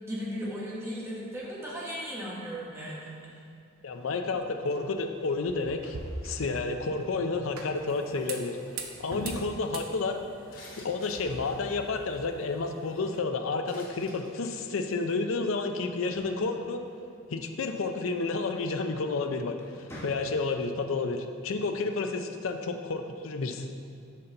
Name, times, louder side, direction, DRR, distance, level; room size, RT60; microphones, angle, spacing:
voice 1, 0.1-3.3, equal, 10° right, -7 dB, 1.2 m, -36 dB
voice 2, 3.8-6.0 6.2-8.6 9.0-10.2 10.5-16.8 17.3-23.7, left 3 dB, 70° left, 6 dB, 0.5 m, -31 dB
sound 1, 3.9-13.2, right 3 dB, 75° right, 0.7 m, -43 dB
sound 2, 10.5-12.7 13.7-14.6 14.9-15.1 15.6-15.7 15.9-16.2 16.5-16.6, left 2 dB, 45° left, 1.5 m, -52 dB
sound 3, 16.0-17.4 18.9-19.1 19.5-20.7, equal, 10° left, 1.1 m, -48 dB
6.5 x 5.4 x 3.8 m, 2.5 s
head